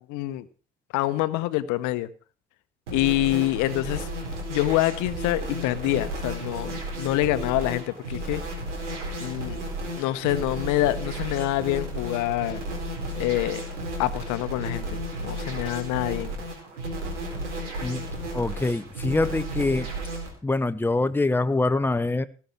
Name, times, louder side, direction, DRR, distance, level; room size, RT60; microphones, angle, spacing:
voice 1, 0.1-0.5 0.9-2.1 2.9-4.1 4.5-8.4 9.2-9.6 10.0-12.6 13.2-13.6 14.0-16.4, left 16 dB, 55° left, 14 dB, 1.1 m, -26 dB
sound 1, 2.9-20.3, right 1 dB, 80° right, 4.4 m, -33 dB
voice 2, 18.3-19.9 20.4-22.3, left 2 dB, 5° left, 12 dB, 0.9 m, -24 dB
18.0 x 7.1 x 5.9 m, 0.39 s
figure-of-eight pair, 60°, 35 cm